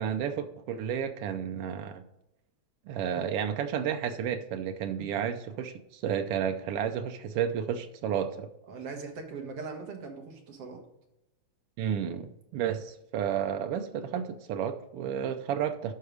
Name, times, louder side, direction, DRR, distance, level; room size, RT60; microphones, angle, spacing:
voice 1, 0.0-2.0 2.9-8.5 11.8-15.9, right 8 dB, 85° right, 7 dB, 1.3 m, -32 dB
voice 2, 8.7-10.8, right 4 dB, 60° right, 2 dB, 2.3 m, -40 dB
12.0 x 4.7 x 5.0 m, 0.86 s
omnidirectional pair, 3.3 m